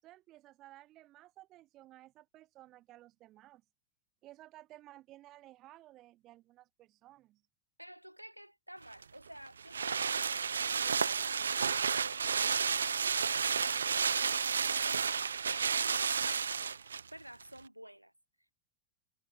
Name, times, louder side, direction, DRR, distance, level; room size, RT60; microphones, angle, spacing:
voice 1, 0.0-3.6 4.2-7.4, right 15 dB, 35° right, 7.4 m, -56 dB
voice 2, 7.8-16.9 17.1-18.1, equal, 90° right, 7.4 m, -51 dB
sound 1, 8.9-17.1 17.4-17.5, right 6 dB, 70° right, 1.0 m, -31 dB
figure-of-eight pair, 90°, 0 cm